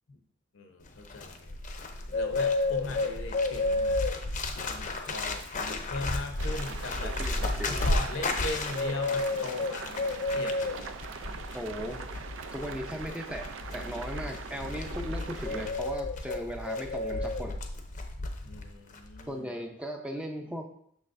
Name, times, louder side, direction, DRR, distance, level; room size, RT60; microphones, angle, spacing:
voice 1, 0.5-1.5 2.1-4.1 4.5-7.2 7.7-10.7 18.4-19.5, left 2 dB, 70° left, 4 dB, 0.8 m, -39 dB
Bird, 0.9-18.7 18.9-19.3, left 2 dB, 40° left, 0.7 m, -32 dB
sound 1, 6.4-15.7, right 5 dB, 75° right, 0.5 m, -42 dB
voice 2, 7.0-7.9 11.5-12.1 12.5-17.6 19.3-20.7, equal, 5° right, 3 dB, 0.5 m, -37 dB
6.4 x 6.2 x 2.6 m, 0.68 s
head